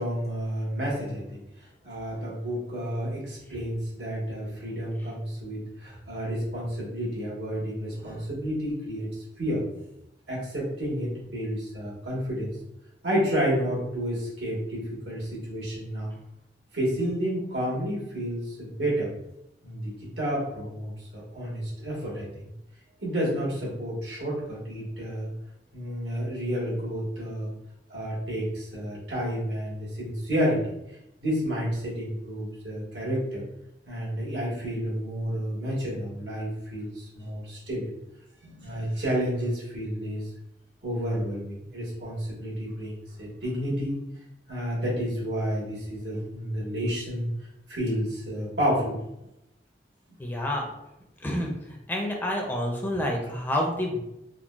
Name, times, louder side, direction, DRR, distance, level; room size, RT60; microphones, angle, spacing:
voice 1, 0.0-9.1 9.4-9.6 10.3-12.5 13.0-16.1 16.7-19.1 19.6-22.5 23.0-25.3 25.7-27.5 27.9-30.7 30.9-33.4 33.9-37.9 38.4-40.2 40.8-44.0 44.5-47.3 47.7-49.0, equal, 90° right, -5 dB, 1.3 m, -30 dB
voice 2, 50.2-50.7 51.2-51.5 51.9-54.0, left 1 dB, 10° left, 0 dB, 0.4 m, -28 dB
3.7 x 2.0 x 2.3 m, 0.86 s
head